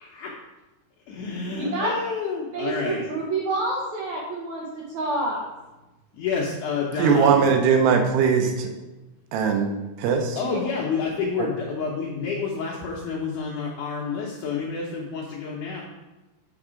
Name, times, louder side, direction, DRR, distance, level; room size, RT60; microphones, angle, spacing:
voice 1, 0.0-0.3 1.1-3.0 6.1-7.4 10.4-15.8, left 5 dB, 80° left, -3 dB, 1.8 m, -29 dB
voice 2, 1.6-1.9 2.5-5.4 10.4-10.6, right 2 dB, 75° right, -3 dB, 1.7 m, -28 dB
voice 3, 7.0-8.7 9.3-10.4 11.4-11.5, right 6 dB, 90° right, 4 dB, 3.0 m, -20 dB
7.0 x 4.8 x 5.0 m, 1.1 s
omnidirectional pair, 4.6 m